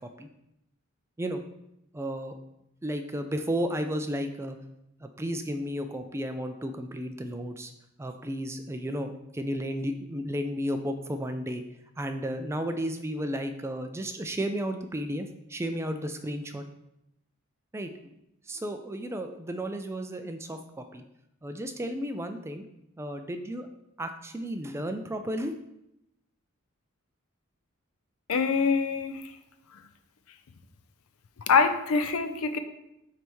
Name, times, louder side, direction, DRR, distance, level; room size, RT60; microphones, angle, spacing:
voice 1, 1.9-2.3 2.8-4.6 5.0-7.7 8.0-11.6 12.0-16.6 17.7-17.9 18.5-21.0 21.4-22.6 23.0-23.7 24.0-25.5, equal, 10° right, 7 dB, 0.3 m, -33 dB
voice 2, 28.3-29.3 31.5-32.6, left 5 dB, 75° left, 9 dB, 0.5 m, -24 dB
9.4 x 3.4 x 3.1 m, 0.85 s
head